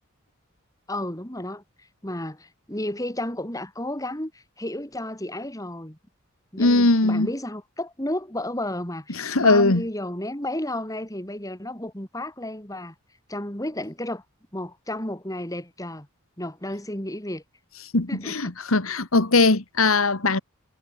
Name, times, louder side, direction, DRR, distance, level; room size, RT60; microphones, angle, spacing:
voice 1, 0.9-1.6 2.0-6.0 6.5-12.9 13.3-14.2 14.5-16.1 16.4-17.4 18.1-18.5, left 1 dB, 15° left, 3.7 m, -32 dB
voice 2, 6.6-7.3 9.2-9.8 17.9-20.4, left 3 dB, 75° left, 1.9 m, -20 dB
head